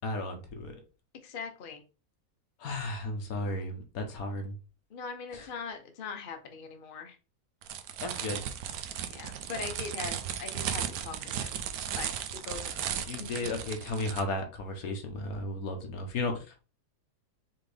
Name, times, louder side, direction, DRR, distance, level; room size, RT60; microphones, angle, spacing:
voice 1, 0.0-0.7 2.6-4.5 5.3-5.5 8.0-8.4 13.1-16.6, left 2 dB, 75° left, 1.3 m, -34 dB
voice 2, 1.2-1.8 4.9-7.2 9.1-10.1 10.4-11.5 11.9-13.3, left 5 dB, 45° left, 0.8 m, -41 dB
sound 1, 7.6-14.2, right 9 dB, 85° right, 1.1 m, -36 dB
4.3 x 3.7 x 3.3 m
omnidirectional pair, 1.5 m